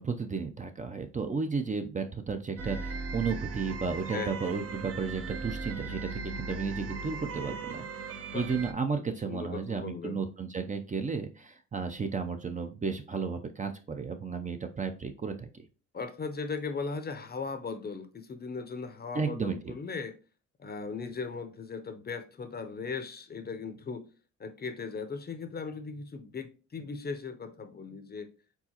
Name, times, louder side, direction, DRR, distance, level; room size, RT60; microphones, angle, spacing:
voice 1, 0.0-15.7 19.1-19.7, right 5 dB, 25° right, 0.5 m, -33 dB
sound 1, 2.6-8.7, right 4 dB, 55° right, 0.8 m, -38 dB
voice 2, 4.1-4.5 8.3-8.5 9.0-10.2 15.9-20.1 20.6-24.1 24.4-28.3, left 4 dB, 30° left, 0.7 m, -38 dB
4.6 x 3.8 x 2.9 m
cardioid pair, 90°, 30 cm